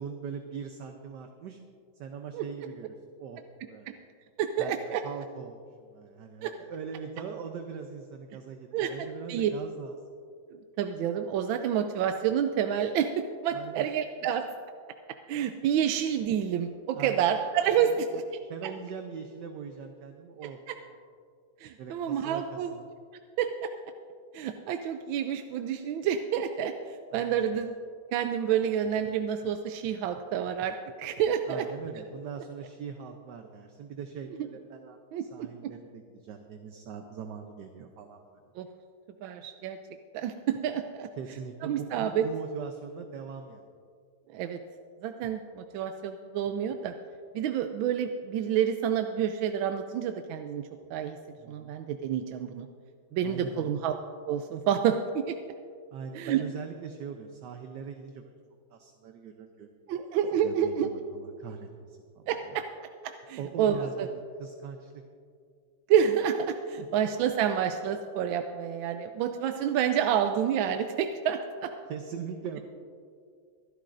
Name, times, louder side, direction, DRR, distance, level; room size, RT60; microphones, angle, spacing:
voice 1, 0.0-1.6 2.0-3.4 3.7-3.9 4.6-10.0 13.5-13.9 16.9-17.2 17.7-20.6 21.8-22.9 27.1-27.5 31.5-38.2 41.2-43.6 51.4-51.7 53.2-53.7 55.9-58.3 58.7-59.7 60.4-62.3 63.4-65.0 66.8-67.1 71.9-72.6, right 6 dB, 70° right, 5 dB, 1.3 m, -41 dB
voice 2, 4.4-5.0 6.4-6.5 8.7-9.5 10.5-14.4 15.3-18.2 18.6-18.7 20.4-20.8 21.6-22.7 23.4-23.7 24.3-27.7 28.1-31.7 35.1-35.7 38.6-38.7 39.2-39.8 40.1-41.1 41.6-42.3 44.3-44.6 45.0-46.9 47.3-51.2 51.5-52.7 53.1-53.9 54.3-55.4 56.1-56.4 59.9-60.9 62.3-62.6 63.0-64.1 65.9-71.7, right 9 dB, 85° right, 7 dB, 1.3 m, -29 dB
24.0 x 11.5 x 2.6 m, 2.3 s
omnidirectional pair, 2.1 m